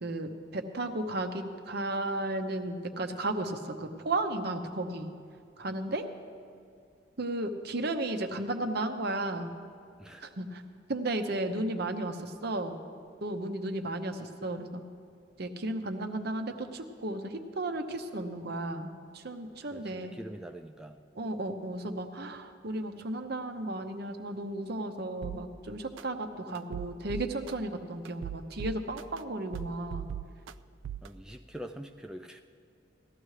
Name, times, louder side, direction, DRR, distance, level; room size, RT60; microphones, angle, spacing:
voice 1, 0.0-5.1 5.6-6.0 7.2-9.5 10.2-10.6 10.9-12.8 13.2-14.8 15.4-20.2 21.2-30.1, right 2 dB, 60° right, 6 dB, 0.9 m, -34 dB
voice 2, 19.7-21.0 31.0-32.4, equal, 5° right, 3 dB, 0.3 m, -44 dB
sound 1, 25.2-25.4 26.0-26.1 26.6-27.5 28.1-29.2 29.5-30.5 30.8-31.1, right 10 dB, 85° right, 0.3 m, -38 dB
18.0 x 13.5 x 3.3 m, 2.5 s
head